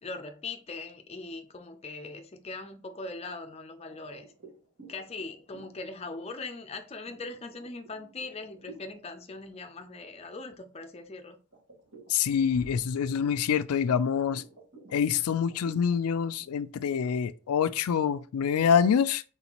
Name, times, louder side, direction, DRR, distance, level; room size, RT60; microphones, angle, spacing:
voice 1, 0.0-4.3 4.9-11.4, left 3 dB, 30° left, 0.5 m, -40 dB
sound 1, 3.9-9.0 9.5-9.7 10.1-11.0 11.5-18.2, right 3 dB, 60° right, 2.4 m, -52 dB
voice 2, 12.1-14.4 14.9-19.2, left 7 dB, 85° left, 0.4 m, -26 dB
4.1 x 3.8 x 2.9 m
head